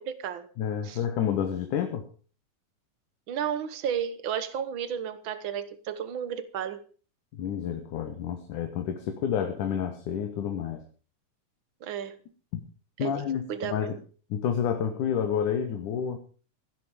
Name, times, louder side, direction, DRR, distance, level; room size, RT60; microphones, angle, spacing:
voice 1, 0.0-0.5 0.9-1.0 3.3-6.8 11.8-12.2 13.0-13.1 13.5-14.0, right 8 dB, 55° right, 1.4 m, -32 dB
voice 2, 0.6-2.1 7.3-10.8 12.5-12.6 13.0-14.0 14.3-16.2, left 8 dB, 75° left, 2.9 m, -29 dB
16.5 x 12.0 x 5.1 m
omnidirectional pair, 3.7 m